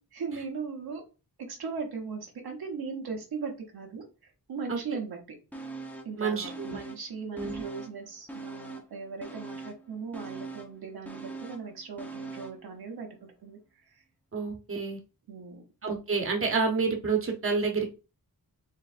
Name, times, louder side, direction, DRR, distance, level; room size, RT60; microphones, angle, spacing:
voice 1, 0.1-1.0 1.4-5.2 6.0-14.0 15.3-15.6, right 5 dB, 85° right, 2 dB, 1.1 m, -38 dB
sound 1, 5.5-6.2 6.4-8.0 8.3-12.7 13.0-13.1, right 3 dB, 5° left, 0.7 m, -42 dB
voice 2, 6.2-6.8 7.3-7.6 14.3-15.0 15.8-17.9, right 4 dB, 35° right, 2 dB, 1.0 m, -29 dB
4.6 x 3.2 x 2.5 m, 0.32 s
wide cardioid pair, 100°, 36 cm